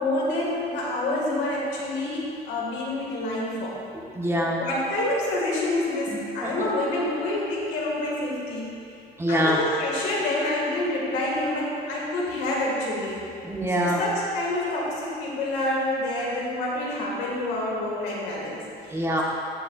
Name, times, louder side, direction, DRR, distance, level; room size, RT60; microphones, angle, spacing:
voice 1, 0.0-3.8 4.6-8.7 9.3-13.3 13.8-18.9, left 1 dB, 85° left, -4 dB, 2.0 m, -27 dB
voice 2, 4.1-4.6 6.4-6.5 9.2-9.6 13.4-14.0 18.9-19.2, equal, 15° right, -2 dB, 1.1 m, -24 dB
14.0 x 5.9 x 2.5 m, 2.5 s
cardioid pair, 110°, 17 cm